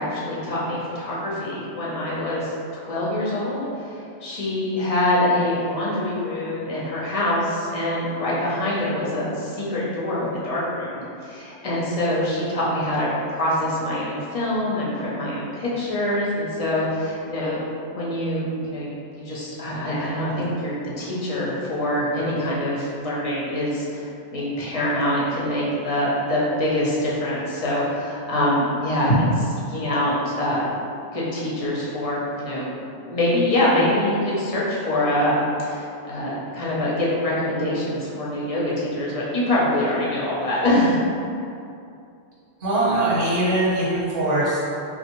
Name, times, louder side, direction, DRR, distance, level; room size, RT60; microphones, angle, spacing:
voice 1, 0.0-3.9 4.2-17.6 17.9-30.6 31.1-41.0, left 1 dB, 40° left, -7 dB, 0.6 m, -24 dB
voice 2, 42.6-44.6, right 1 dB, 80° right, -8 dB, 1.3 m, -21 dB
3.3 x 2.5 x 3.0 m, 2.5 s
omnidirectional pair, 1.2 m